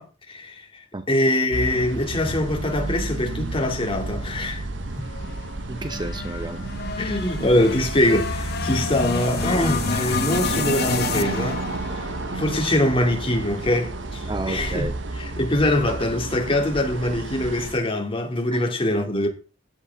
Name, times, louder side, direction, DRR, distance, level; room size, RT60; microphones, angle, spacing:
voice 1, 0.0-4.7 7.0-11.6 12.2-14.9 15.1-19.3, left 1 dB, 30° left, 2.4 m, -23 dB
sound 1, 1.5-17.8, right 2 dB, 85° right, 1.0 m, -31 dB
sound 2, 4.9-13.3, left 4 dB, 60° left, 0.9 m, -30 dB
voice 2, 5.7-6.7 14.3-14.9 18.5-18.6, right 2 dB, 25° right, 0.6 m, -31 dB
15.0 x 8.3 x 3.6 m
head